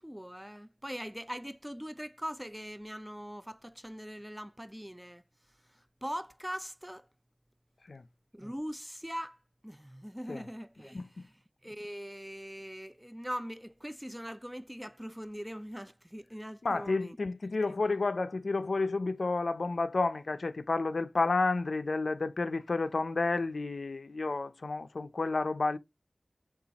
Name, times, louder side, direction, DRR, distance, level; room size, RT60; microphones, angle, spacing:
voice 1, 0.0-5.2 5.7-7.1 8.3-9.4 9.6-11.3 11.6-17.2, equal, 5° right, 0.3 m, -41 dB
voice 2, 10.9-11.3 16.6-25.8, left 3 dB, 90° left, 0.4 m, -31 dB
5.7 x 2.4 x 3.9 m
wide cardioid pair, 50°, 0 cm